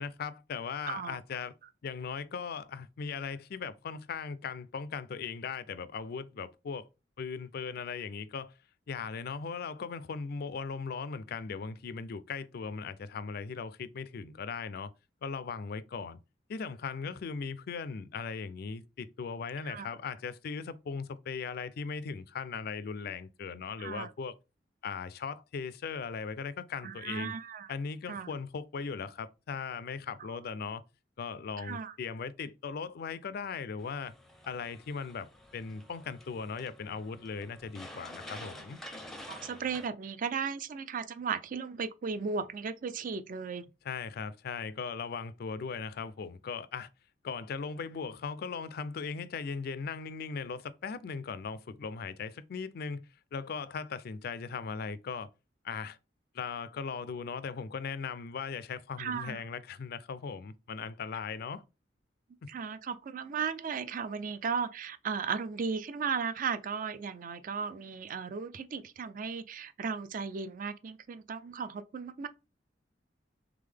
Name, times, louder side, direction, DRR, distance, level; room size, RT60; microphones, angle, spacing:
voice 1, 0.0-1.5 1.8-6.9 7.2-8.5 8.9-14.9 15.2-16.2 16.5-24.4 24.8-27.3 27.7-30.8 31.2-34.1 34.5-38.8 43.8-46.9 47.2-53.0 53.3-55.3 55.6-56.0 56.3-61.6 62.4-62.5, left 5 dB, 60° left, 0.4 m, -38 dB
voice 2, 0.8-1.2 19.6-19.9 23.8-24.1 26.8-27.7 28.1-28.3 31.6-31.9 39.3-43.6 59.0-59.4 62.5-72.3, right 6 dB, 50° right, 0.4 m, -36 dB
sound 1, 33.8-39.9, left 1 dB, ahead, 0.5 m, -49 dB
3.7 x 3.4 x 3.4 m
head